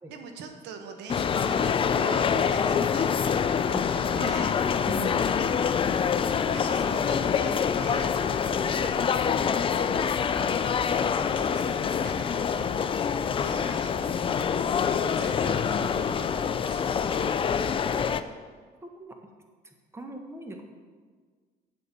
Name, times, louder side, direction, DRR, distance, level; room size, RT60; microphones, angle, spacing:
voice 1, 0.1-6.0 6.5-17.1, right 5 dB, 85° right, 6 dB, 1.0 m, -44 dB
sound 1, 1.1-18.2, left 7 dB, 30° left, 0.4 m, -26 dB
voice 2, 4.9-5.3 18.8-19.2 19.6-20.6, equal, 15° right, 4 dB, 1.2 m, -38 dB
8.7 x 7.0 x 5.3 m, 1.5 s
cardioid pair, 110°, 17 cm